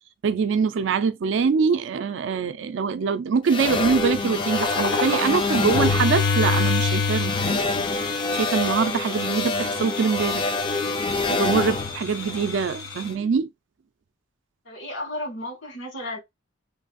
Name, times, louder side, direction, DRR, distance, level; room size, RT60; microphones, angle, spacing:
voice 1, 0.2-7.6 8.3-10.5 11.3-13.5, right 5 dB, 65° right, 0.4 m, -24 dB
sound 1, 3.5-12.9, left 3 dB, 25° left, 0.4 m, -25 dB
sound 2, 4.1-13.2, left 3 dB, 90° left, 1.1 m, -34 dB
voice 2, 14.6-16.2, left 1 dB, 70° left, 1.6 m, -33 dB
3.2 x 2.3 x 2.5 m
head